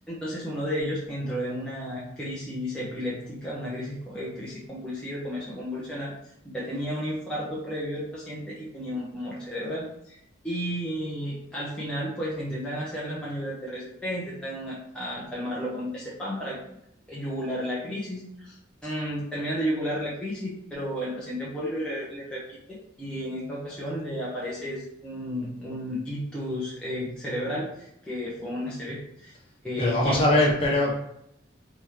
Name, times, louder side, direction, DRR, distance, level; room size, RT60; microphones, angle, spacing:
voice 1, 0.1-6.1 6.4-10.2 10.4-16.6 17.1-18.6 18.8-29.3 29.6-30.4, equal, 5° left, -8 dB, 0.8 m, -33 dB
voice 2, 29.8-30.9, left 1 dB, 25° left, -4 dB, 1.1 m, -21 dB
4.3 x 3.5 x 3.3 m, 0.77 s
head